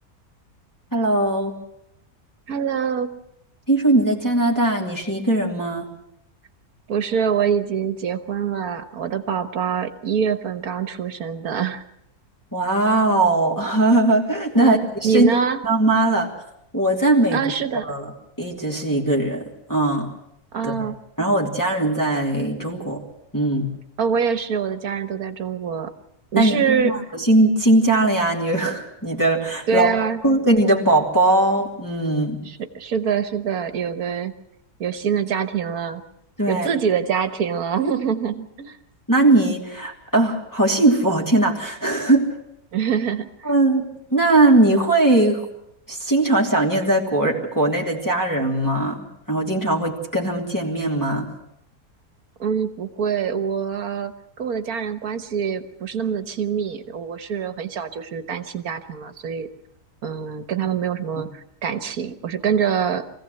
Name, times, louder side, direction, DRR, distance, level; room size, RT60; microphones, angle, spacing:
voice 1, 0.9-1.5 3.7-5.9 12.5-15.3 15.6-16.3 16.7-17.4 17.9-18.1 18.4-20.1 20.6-20.9 21.2-23.0 23.3-23.7 26.4-29.9 30.2-32.4 36.4-36.7 39.1-42.3 43.4-45.4 45.9-51.3 61.2-61.3, right 2 dB, 10° left, -3 dB, 2.9 m, -20 dB
voice 2, 2.5-3.2 6.9-11.8 14.5-15.6 17.3-17.9 20.5-21.0 24.0-25.9 26.3-26.9 29.7-30.2 32.5-34.3 34.8-36.0 36.5-38.8 42.7-43.5 52.4-59.5 60.0-63.0, right 7 dB, 70° right, 10 dB, 1.7 m, -25 dB
23.5 x 16.0 x 7.9 m, 0.79 s
omnidirectional pair, 1.6 m